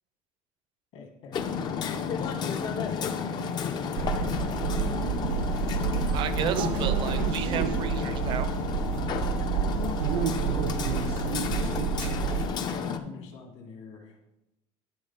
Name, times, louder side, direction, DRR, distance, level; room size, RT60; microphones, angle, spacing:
voice 1, 0.9-4.7 9.5-14.2, left 4 dB, 50° left, 2 dB, 1.5 m, -44 dB
Hammer, 1.3-13.0, left 6 dB, 35° left, 0.6 m, -32 dB
sound 1, 4.0-12.5, right 8 dB, 80° right, 0.8 m, -29 dB
voice 2, 6.1-8.5, right 9 dB, 40° right, 12 dB, 0.6 m, -33 dB
10.5 x 4.1 x 5.6 m, 0.91 s
cardioid pair, 180°, 13 cm